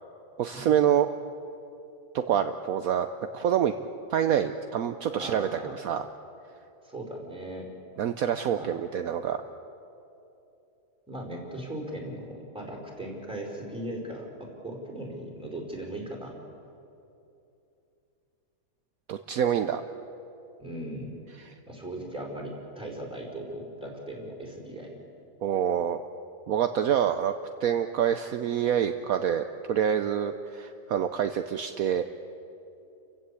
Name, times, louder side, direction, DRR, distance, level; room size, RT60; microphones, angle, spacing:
voice 1, 0.4-1.1 2.1-3.1 3.3-3.7 4.1-6.1 8.0-9.4 19.1-19.8 21.4-21.5 25.4-26.0 26.5-27.3 27.6-32.1, right 9 dB, 65° right, 8 dB, 1.1 m, -26 dB
voice 2, 5.2-5.7 6.8-7.7 8.5-8.7 11.1-16.4 20.6-21.2 21.7-25.0, right 1 dB, 5° right, -2 dB, 4.7 m, -38 dB
30.0 x 15.5 x 8.4 m, 2.8 s
omnidirectional pair, 1.7 m